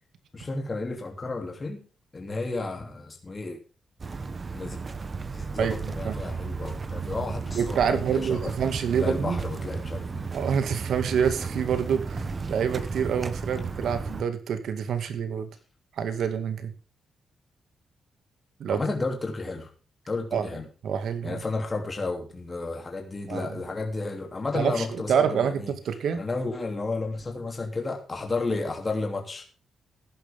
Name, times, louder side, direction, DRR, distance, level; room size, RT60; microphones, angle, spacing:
voice 1, 0.3-1.8 2.1-3.6 4.5-4.8 5.3-8.6 9.0-10.3 18.7-19.7 20.1-20.7 21.2-25.7 26.1-29.4, left 3 dB, 30° left, 3 dB, 3.0 m, -32 dB
sound 1, 4.0-14.2, right 4 dB, 35° right, 1.2 m, -33 dB
voice 2, 5.6-6.2 7.5-9.4 10.3-15.5 15.9-16.7 18.6-18.8 20.3-20.5 20.8-21.4 23.3-23.6 24.5-26.2, right 7 dB, 75° right, 9 dB, 2.1 m, -27 dB
15.0 x 11.0 x 3.7 m, 0.35 s
cardioid pair, 95°, 0 cm